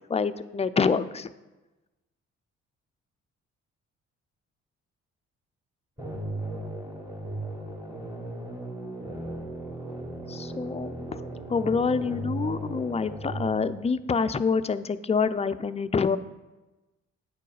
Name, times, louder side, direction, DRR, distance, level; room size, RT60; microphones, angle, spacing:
voice 1, 0.1-1.3 10.3-10.9 11.5-16.2, left 5 dB, 20° left, 12 dB, 0.4 m, -26 dB
sound 1, 6.0-13.5, right 2 dB, 10° right, 2.1 m, -36 dB
8.6 x 4.5 x 4.8 m, 1.1 s
hypercardioid pair, 50°, 32 cm